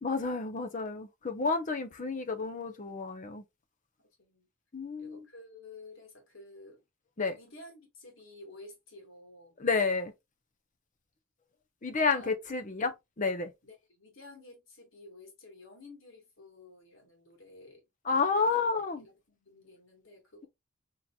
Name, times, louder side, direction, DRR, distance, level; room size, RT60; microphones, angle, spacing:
voice 1, 0.0-3.4 4.7-5.3 7.2-7.4 9.6-10.1 11.8-13.5 18.0-19.0, left 4 dB, 40° left, 0.8 m, -30 dB
voice 2, 4.0-4.5 5.0-6.8 7.3-9.6 12.1-12.4 13.6-17.8 18.3-18.6 19.0-20.5, left 2 dB, 90° left, 2.3 m, -52 dB
4.3 x 3.8 x 2.3 m
head